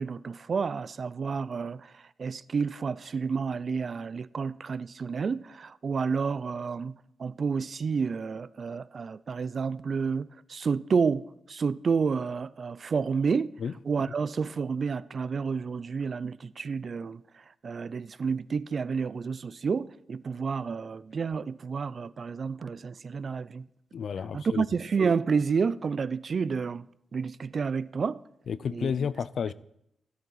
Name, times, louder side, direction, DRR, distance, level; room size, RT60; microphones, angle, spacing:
voice 1, 0.0-13.6 13.9-17.2 17.6-23.7 24.3-26.9 27.1-28.2 28.7-28.9, right 5 dB, 45° right, 0.3 m, -30 dB
voice 2, 23.9-24.6 28.5-29.5, left 6 dB, 55° left, 0.4 m, -31 dB
13.5 x 12.5 x 4.0 m
wide cardioid pair, 130°, 0 cm